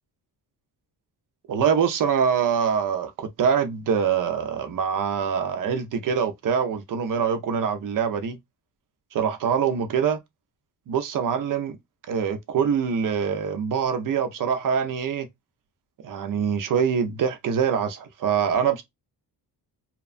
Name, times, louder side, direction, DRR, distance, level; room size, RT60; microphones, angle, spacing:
voice 1, 1.5-8.4 9.1-10.2 10.9-11.8 12.1-15.3 16.0-18.8, right 7 dB, 50° right, 0.6 m, -24 dB
2.9 x 2.2 x 2.4 m
wide cardioid pair, 155°, 40 cm